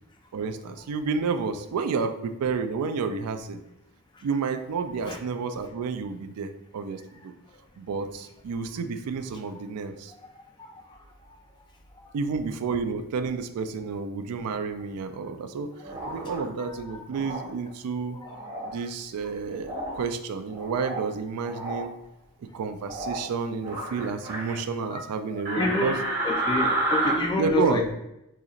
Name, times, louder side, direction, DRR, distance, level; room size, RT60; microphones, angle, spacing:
voice 1, 0.3-3.6 4.2-7.3 7.8-10.1 12.1-18.2 18.6-21.9 22.5-26.0 27.4-27.8, right 5 dB, 85° right, 9 dB, 0.4 m, -30 dB
voice 2, 10.6-11.0 12.0-12.1 18.7-18.8 24.9-25.0 25.3-25.9 26.2-27.9, left 2 dB, 20° left, 3 dB, 0.4 m, -28 dB
sound 1, 15.8-16.4 17.1-17.4 18.2-18.7 19.6-20.0 20.5-21.1 21.4-21.8 22.8-23.2 23.6-24.5 25.4-27.1, right 2 dB, 40° right, 1.5 m, -30 dB
3.9 x 2.9 x 2.4 m, 0.86 s
head